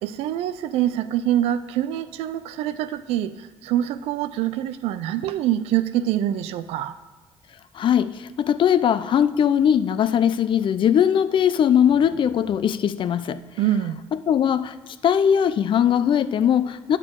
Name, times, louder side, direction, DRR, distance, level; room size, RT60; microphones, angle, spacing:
voice 1, 0.0-6.9 13.6-14.0, right 12 dB, 80° right, 14 dB, 0.4 m, -25 dB
voice 2, 7.7-13.4 14.1-14.7 15.0-17.0, left 9 dB, 55° left, 13 dB, 0.5 m, -20 dB
9.6 x 6.4 x 3.7 m, 1.3 s
supercardioid pair, 70°, 10 cm